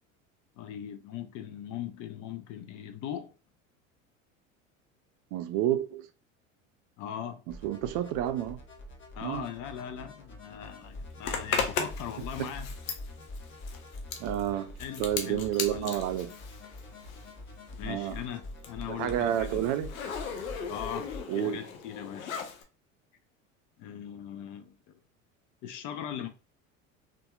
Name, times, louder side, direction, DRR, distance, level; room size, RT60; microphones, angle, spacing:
voice 1, 0.6-3.3 7.0-7.4 9.2-12.7 14.8-16.0 17.8-19.7 20.7-21.1 21.3-22.3 23.8-25.0 25.6-26.3, left 9 dB, 50° left, 0.7 m, -40 dB
voice 2, 5.3-6.1 7.5-8.6 9.2-9.5 12.4-12.5 14.2-16.3 17.8-18.2 18.9-19.9 21.3-21.7, right 11 dB, 50° right, 0.5 m, -30 dB
sound 1, 7.5-21.2, left 1 dB, 30° left, 1.0 m, -45 dB
Zipper (clothing), 11.2-17.4 17.7-22.6, left 6 dB, 85° left, 0.7 m, -37 dB
2.7 x 2.6 x 2.3 m
hypercardioid pair, 80°, 40 cm